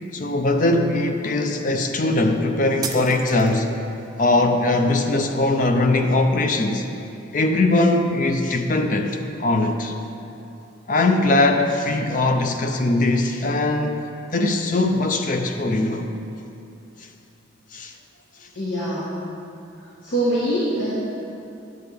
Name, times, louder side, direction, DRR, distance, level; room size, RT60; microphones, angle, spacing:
voice 1, 0.1-3.7 4.2-6.9 7.3-9.9 10.9-14.0 14.3-16.1 17.7-17.9, left 2 dB, 40° left, 4 dB, 0.5 m, -20 dB
sound 1, 2.8-3.8, right 6 dB, 20° right, 0.4 m, -33 dB
voice 2, 18.5-19.2 19.8-20.9, right 1 dB, 75° left, -8 dB, 1.3 m, -24 dB
10.5 x 7.8 x 3.4 m, 2.8 s
head